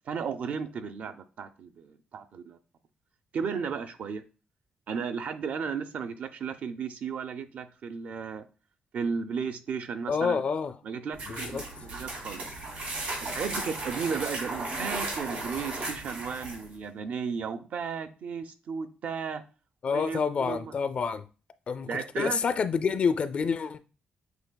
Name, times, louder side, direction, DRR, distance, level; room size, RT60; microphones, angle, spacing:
voice 1, 0.1-2.6 3.3-4.2 4.9-8.4 8.9-10.4 10.8-12.4 13.2-19.4 19.9-20.7 21.9-22.4, right 6 dB, 60° right, 0.5 m, -34 dB
voice 2, 10.1-10.8 11.2-11.6 19.8-21.3 21.7-23.8, left 5 dB, 45° left, 0.4 m, -28 dB
sound 1, 11.1-16.7, right 2 dB, 85° right, 2.5 m, -35 dB
7.9 x 2.7 x 2.2 m
cardioid pair, 130°, 3 cm